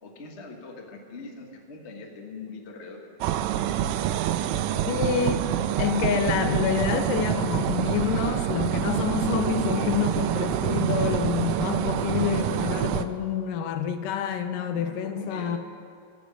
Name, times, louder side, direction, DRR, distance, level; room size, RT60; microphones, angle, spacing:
voice 1, 0.0-3.7 4.2-5.1 14.7-15.6, left 3 dB, 60° left, 1 dB, 0.7 m, -43 dB
sound 1, 3.2-13.1, right 11 dB, 80° right, 2.1 m, -26 dB
voice 2, 4.9-5.5 5.8-15.6, left 8 dB, 90° left, 9 dB, 2.3 m, -27 dB
14.5 x 6.3 x 9.5 m, 2.5 s
omnidirectional pair, 3.8 m